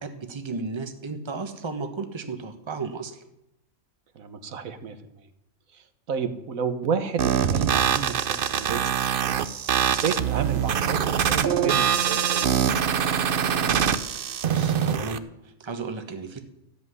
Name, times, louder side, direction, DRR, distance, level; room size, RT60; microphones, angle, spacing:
voice 1, 0.0-3.2 13.4-16.4, right 4 dB, 20° right, 7 dB, 1.1 m, -34 dB
voice 2, 4.1-5.2 5.7-9.0 9.9-12.5, right 6 dB, 70° right, 9 dB, 1.5 m, -31 dB
sound 1, 7.2-15.2, right 8 dB, 50° right, 0.7 m, -24 dB
13.5 x 7.5 x 9.6 m, 0.86 s
omnidirectional pair, 1.5 m